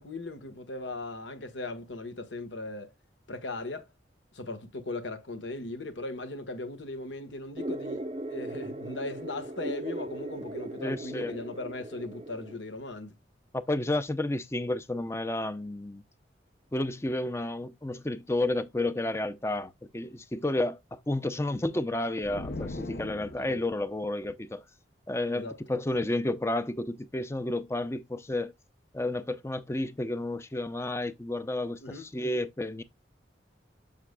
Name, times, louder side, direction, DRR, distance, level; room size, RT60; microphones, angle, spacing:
voice 1, 0.0-2.9 3.3-3.9 4.3-13.2 23.5-23.6 25.3-25.6 31.8-32.1, left 2 dB, 85° left, 1.4 m, -38 dB
sound 1, 7.6-12.6, right 1 dB, 30° right, 0.5 m, -38 dB
voice 2, 10.8-11.4 13.5-16.0 16.7-24.6 25.1-28.5 28.9-32.8, left 1 dB, 15° left, 0.5 m, -31 dB
sound 2, 22.2-23.9, left 2 dB, 60° left, 0.7 m, -39 dB
7.3 x 6.9 x 2.3 m
head